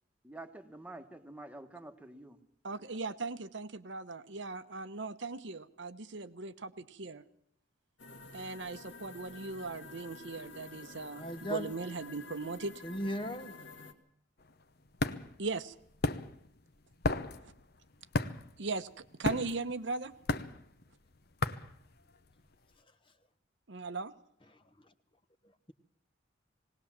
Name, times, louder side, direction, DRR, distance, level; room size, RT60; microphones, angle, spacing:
voice 1, 0.2-2.4, right 2 dB, 5° right, 1.4 m, -48 dB
voice 2, 2.6-7.2 8.3-12.7 15.4-15.7 18.6-20.1 23.7-24.1, right 3 dB, 65° right, 0.9 m, -38 dB
sound 1, 8.0-13.9, left 3 dB, 70° left, 2.1 m, -50 dB
voice 3, 11.2-11.8 12.8-13.7 24.5-24.6, equal, 25° left, 1.0 m, -37 dB
sound 2, 14.4-22.5, left 2 dB, 50° left, 0.9 m, -35 dB
19.5 x 18.5 x 7.4 m
head